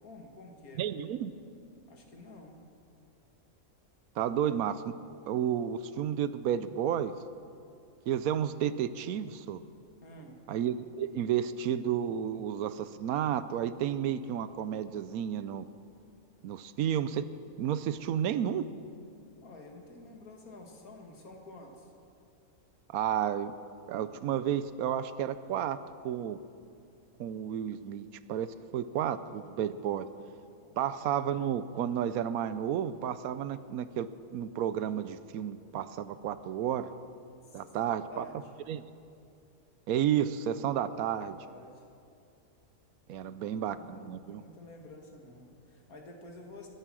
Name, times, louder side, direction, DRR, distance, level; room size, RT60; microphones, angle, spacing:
voice 1, 0.0-0.9 1.9-2.6 10.0-10.4 19.4-21.9 30.6-30.8 37.5-38.4 41.1-41.8 43.1-46.7, left 2 dB, 80° left, 2 dB, 2.3 m, -50 dB
voice 2, 0.8-1.3 4.2-4.9 5.3-7.1 8.1-9.6 10.5-15.7 16.4-17.3 17.6-18.7 22.9-23.5 23.9-25.8 26.0-26.4 27.2-30.1 30.8-36.9 37.5-38.2 38.7-38.8 39.9-41.4 43.1-44.4, right 9 dB, 80° right, 14 dB, 1.1 m, -32 dB
21.5 x 9.8 x 6.2 m, 2.5 s
omnidirectional pair, 1.5 m